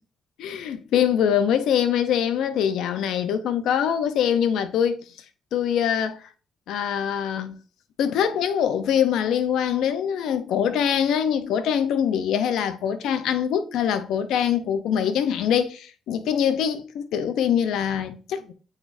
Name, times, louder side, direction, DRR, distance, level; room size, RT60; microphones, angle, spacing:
voice 1, 0.4-5.0 5.5-6.2 6.7-7.6 8.0-18.5, left 8 dB, 80° left, 0.6 m, -23 dB
8.8 x 4.2 x 2.6 m
cardioid pair, 90°, 0 cm